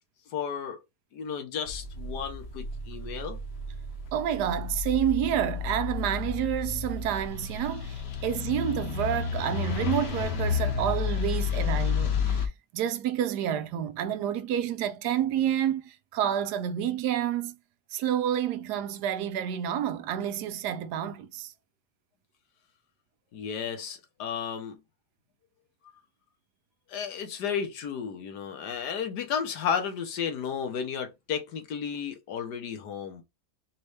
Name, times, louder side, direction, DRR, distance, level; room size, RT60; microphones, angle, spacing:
voice 1, 0.3-0.8 1.1-3.4 23.3-24.8 26.9-33.2, left 7 dB, 90° left, 1.6 m, -33 dB
sound 1, 1.7-12.5, left 6 dB, 50° left, 0.9 m, -31 dB
voice 2, 4.1-17.6 17.9-21.5, right 10 dB, 85° right, 1.2 m, -29 dB
4.3 x 3.1 x 3.2 m
omnidirectional pair, 1.7 m